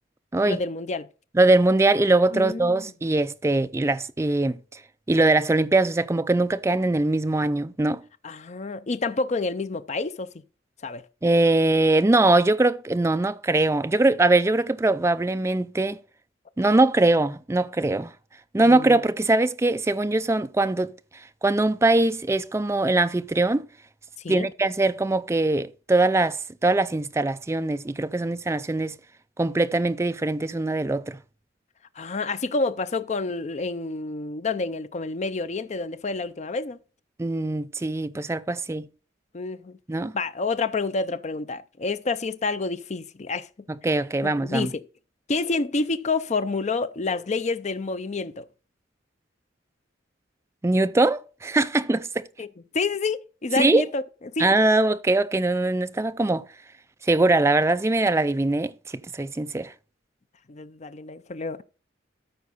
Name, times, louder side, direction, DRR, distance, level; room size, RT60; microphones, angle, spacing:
voice 1, 0.4-1.1 2.3-2.9 8.2-10.3 10.8-11.0 18.6-19.0 24.2-24.5 32.0-36.8 39.3-39.8 40.1-43.5 44.2-44.8 45.3-48.5 52.4-52.5 52.7-54.0 54.4-54.5 60.5-61.6, left 3 dB, 35° left, 0.5 m, -28 dB
voice 2, 1.3-4.6 5.1-8.0 11.2-16.0 16.6-18.1 18.5-20.9 21.4-23.7 24.3-29.0 29.4-31.2 37.2-38.9 39.9-40.2 43.7-44.7 50.6-52.3 53.6-53.8 54.4-56.4 57.0-58.7 59.1-59.7, right 2 dB, 15° right, 0.4 m, -22 dB
13.0 x 4.5 x 4.0 m
head